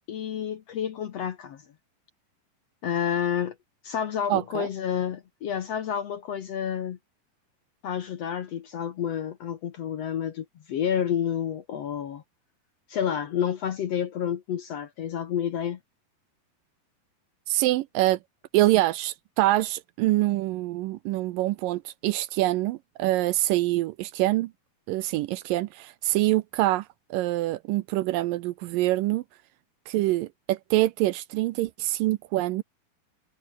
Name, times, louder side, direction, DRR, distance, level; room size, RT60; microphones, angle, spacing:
voice 1, 0.1-1.6 2.8-3.6 3.8-7.0 7.8-12.2 12.9-15.8, left 9 dB, 60° left, 1.8 m, -29 dB
voice 2, 4.3-4.7 17.5-18.2 18.5-24.5 24.9-29.2 29.9-32.6, right 17 dB, 80° right, 2.2 m, -25 dB
omnidirectional pair, 4.3 m